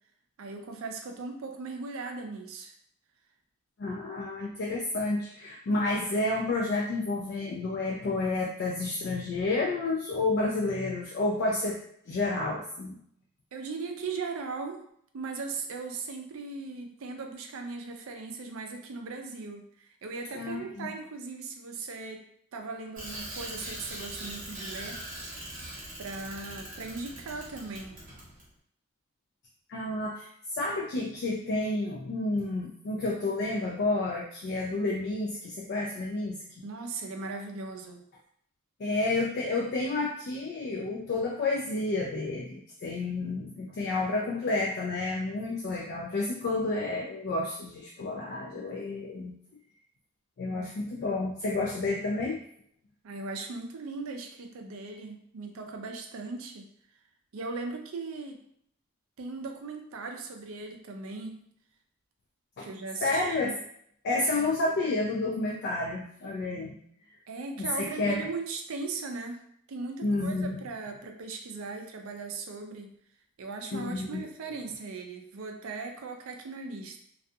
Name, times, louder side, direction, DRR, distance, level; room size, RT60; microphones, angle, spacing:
voice 1, 0.4-2.7 13.5-14.8 15.1-22.2 22.5-25.0 26.0-28.0 36.6-38.0 53.0-56.6 57.3-58.4 59.2-61.4 62.6-63.5 67.3-69.4 69.7-70.3 70.6-72.9 73.4-77.0, right 4 dB, 65° right, 4 dB, 0.4 m, -38 dB
voice 2, 3.8-11.8 12.1-13.0 20.3-20.9 29.7-36.6 38.8-49.3 50.4-52.4 62.6-62.7 63.0-63.5 64.0-67.2 67.6-68.2 70.0-70.6 73.7-74.5, left 2 dB, 50° left, -2 dB, 0.3 m, -30 dB
Bicycle, 23.0-28.5, right 1 dB, 40° right, 0.9 m, -41 dB
2.3 x 2.3 x 2.6 m, 0.68 s
head